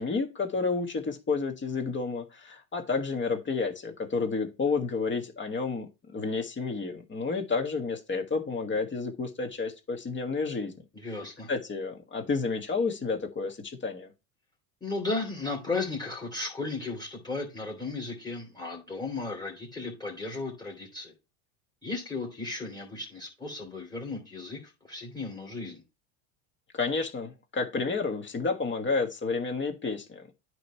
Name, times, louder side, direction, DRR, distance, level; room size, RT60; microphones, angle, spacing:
voice 1, 0.0-10.7 11.5-14.1 26.7-30.3, left 4 dB, 25° left, 5 dB, 1.4 m, -30 dB
voice 2, 10.9-11.5 14.8-21.1 21.8-25.8, left 3 dB, 10° left, -2 dB, 2.9 m, -35 dB
9.1 x 3.1 x 5.6 m, 0.27 s
supercardioid pair, 105°, 43 cm